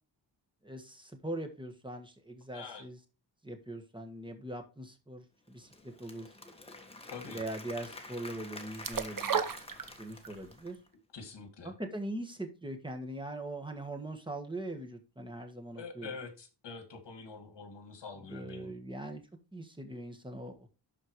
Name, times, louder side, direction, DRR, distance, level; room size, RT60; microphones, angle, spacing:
voice 1, 0.6-3.0 3.4-6.3 7.3-9.5 10.0-10.8 11.6-16.1 18.2-19.2 19.5-20.7, right 1 dB, 10° right, 1.5 m, -41 dB
voice 2, 2.5-2.9 7.1-7.4 11.1-11.7 15.8-18.7, left 5 dB, 70° left, 2.1 m, -45 dB
Applause / Crowd, 5.5-10.9, left 2 dB, 15° left, 1.3 m, -49 dB
sound 1, 8.8-10.4 10.7-10.8, right 7 dB, 50° right, 0.9 m, -32 dB
12.0 x 4.4 x 3.0 m
wide cardioid pair, 140°, 43 cm